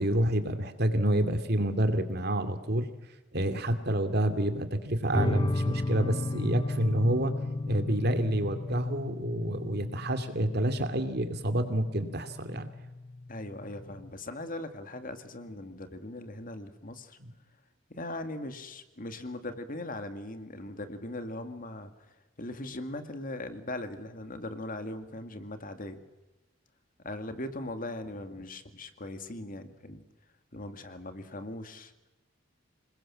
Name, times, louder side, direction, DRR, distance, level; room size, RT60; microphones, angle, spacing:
voice 1, 0.0-2.9 3.3-7.4 7.6-12.7 17.2-17.3, right 1 dB, 55° right, 8 dB, 2.5 m, -28 dB
sound 1, 5.1-14.1, left 2 dB, 25° left, 0.9 m, -34 dB
voice 2, 13.3-17.2 17.9-21.9 22.4-26.0 27.0-30.0 30.5-31.9, left 1 dB, 45° left, 8 dB, 2.2 m, -39 dB
27.0 x 21.5 x 7.5 m, 1.1 s
head